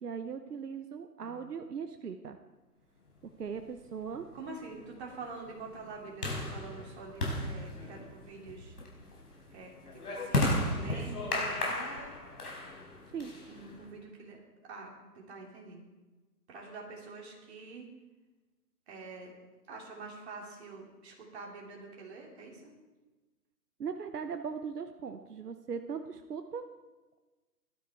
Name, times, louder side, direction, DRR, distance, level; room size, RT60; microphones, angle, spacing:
voice 1, 0.0-2.4 3.4-4.3 13.1-13.3 23.8-26.7, right 6 dB, 70° right, 8 dB, 0.9 m, -39 dB
sound 1, 3.5-13.9, left 1 dB, 65° left, 4.7 m, -35 dB
voice 2, 4.3-8.8 9.5-12.2 13.4-15.8 16.5-17.9 18.9-19.3 19.7-22.7, right 3 dB, 40° right, -1 dB, 3.5 m, -46 dB
16.5 x 12.0 x 4.6 m, 1.2 s
figure-of-eight pair, 140°, 49 cm